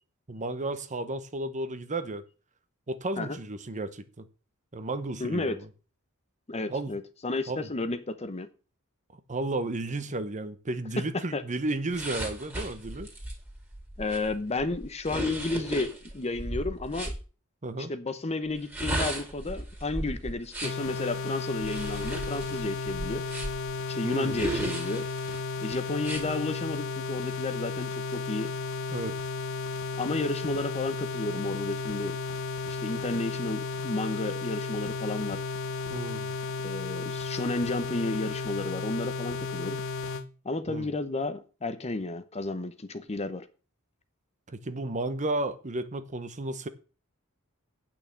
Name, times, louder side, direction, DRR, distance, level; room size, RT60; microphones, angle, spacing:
voice 1, 0.3-2.2 2.9-4.3 4.7-5.7 6.7-7.0 7.5-7.7 9.3-13.1 17.6-17.9 24.0-24.4 28.9-29.2 35.9-36.3 40.7-40.9 44.5-46.7, right 2 dB, 35° right, 0.9 m, -33 dB
voice 2, 5.2-5.6 6.5-8.5 11.1-11.4 14.0-17.1 17.8-23.2 23.9-25.0 25.6-28.5 30.0-32.2 32.7-35.4 36.6-39.8 40.4-43.5, left 2 dB, 30° left, 0.8 m, -32 dB
sound 1, 11.9-17.2 18.5-20.9 21.6-23.7 24.3-25.4 26.0-26.2, right 1 dB, 10° right, 2.5 m, -35 dB
sound 2, 20.6-40.2, left 4 dB, 65° left, 1.0 m, -34 dB
8.9 x 6.0 x 7.0 m
head